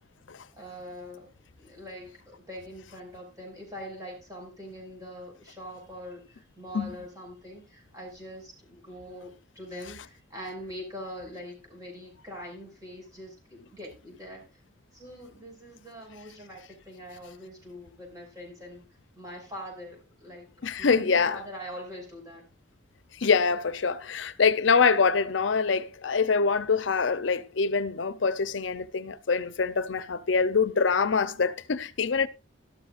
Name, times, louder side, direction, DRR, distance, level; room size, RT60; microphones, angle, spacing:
voice 1, 0.5-1.3 1.6-14.5 14.9-18.8 19.1-20.5 20.8-22.4, equal, 20° right, 5.7 m, -43 dB
voice 2, 20.6-21.4 23.2-32.3, left 5 dB, 80° left, 0.6 m, -25 dB
13.0 x 12.0 x 2.5 m
head